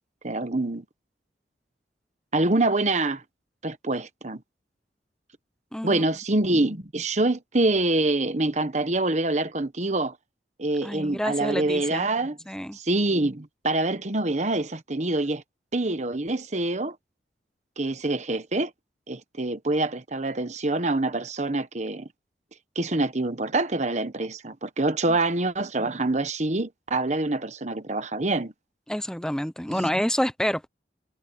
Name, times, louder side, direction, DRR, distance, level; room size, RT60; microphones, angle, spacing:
voice 1, 0.2-0.8 2.3-3.2 3.6-4.4 5.8-10.1 10.6-12.4 12.7-15.4 15.7-16.9 17.8-18.7 19.1-22.1 22.7-28.5 29.7-29.9, right 2 dB, 40° right, 1.2 m, -25 dB
voice 2, 5.7-6.0 10.8-12.1 12.5-12.8 25.1-25.2 28.9-30.7, equal, 5° left, 0.8 m, -28 dB
head